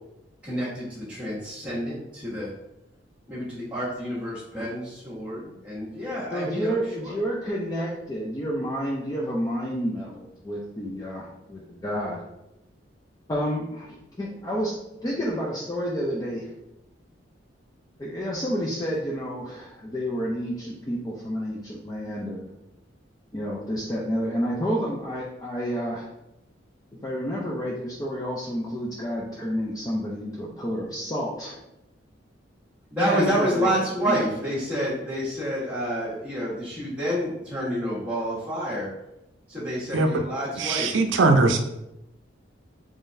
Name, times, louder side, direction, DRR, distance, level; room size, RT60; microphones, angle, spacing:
voice 1, 0.4-2.5 3.3-6.8 32.9-38.9 39.5-40.9, equal, 5° right, -13 dB, 1.3 m, -29 dB
voice 2, 6.3-12.2 13.3-14.8 15.0-16.5 18.0-22.5 23.3-26.1 27.0-31.6 33.0-33.7 34.0-34.4, equal, 20° left, -4 dB, 0.5 m, -30 dB
voice 3, 40.6-41.6, right 3 dB, 80° right, 5 dB, 0.5 m, -20 dB
3.7 x 3.2 x 2.6 m, 0.86 s
head